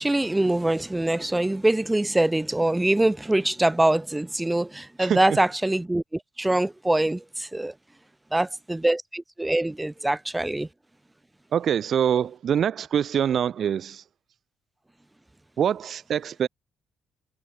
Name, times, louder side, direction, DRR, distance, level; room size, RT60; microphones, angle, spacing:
voice 1, 0.0-7.7 8.3-10.7, right 1 dB, 10° right, 5.3 m, -24 dB
voice 2, 11.5-14.0 15.6-16.5, right 8 dB, 60° right, 2.9 m, -24 dB
cardioid pair, 90°, 0 cm